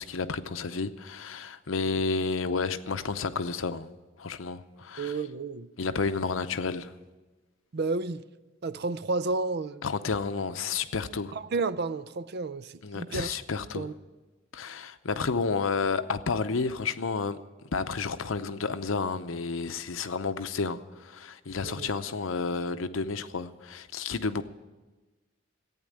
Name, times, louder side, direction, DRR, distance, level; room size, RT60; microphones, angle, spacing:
voice 1, 0.0-3.9 4.2-5.2 5.8-6.9 9.8-11.3 12.8-13.9 14.5-17.4 17.7-24.4, left 4 dB, 85° left, 0.7 m, -31 dB
voice 2, 5.0-5.7 7.7-8.2 8.6-9.8 11.3-13.4 13.7-13.9 21.6-21.9, right 3 dB, 55° right, 0.5 m, -31 dB
14.5 x 9.1 x 8.6 m
head